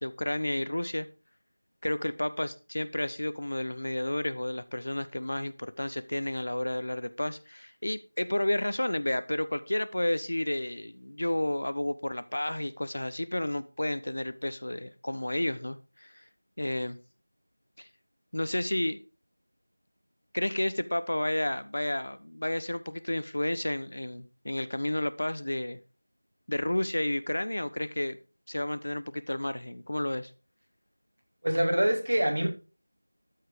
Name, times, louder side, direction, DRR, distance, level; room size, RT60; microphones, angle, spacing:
voice 1, 0.0-1.1 1.8-16.2 16.6-17.0 17.8-17.9 18.3-19.0 20.3-25.8 26.5-28.2 28.5-30.3, left 1 dB, 60° left, 0.9 m, -31 dB
voice 2, 31.4-32.5, right 1 dB, 60° right, 2.8 m, -25 dB
13.0 x 4.8 x 5.0 m
figure-of-eight pair, 175°, 0 cm